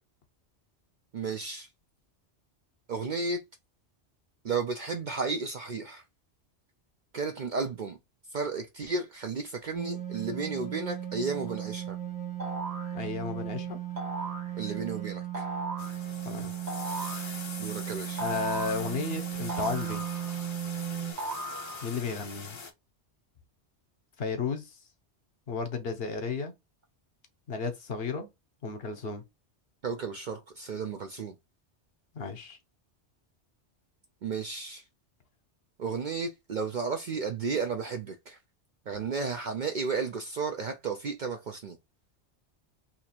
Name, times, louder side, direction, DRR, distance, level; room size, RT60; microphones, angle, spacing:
voice 1, 1.1-1.7 2.9-3.4 4.4-6.0 7.1-8.0 8.3-12.0 14.6-15.5 17.6-18.2 29.8-31.3 34.2-34.8 35.8-38.4 38.9-41.8, right 4 dB, 55° right, 0.5 m, -33 dB
sound 1, 9.7-21.1, right 12 dB, 10° right, 0.6 m, -36 dB
sound 2, 12.4-12.9 14.0-14.5 15.3-16.0 16.7-17.3 18.2-18.9 19.5-20.4 21.2-22.0, right 2 dB, 40° right, 0.9 m, -37 dB
voice 2, 12.9-13.8 16.2-16.5 18.2-20.0 21.8-22.6 24.2-24.6 25.5-26.5 27.5-28.3 28.6-29.2 32.1-32.6, left 5 dB, 60° left, 1.0 m, -33 dB
sound 3, 15.8-22.7, left 4 dB, 30° left, 0.6 m, -43 dB
2.9 x 2.4 x 4.3 m
omnidirectional pair, 1.2 m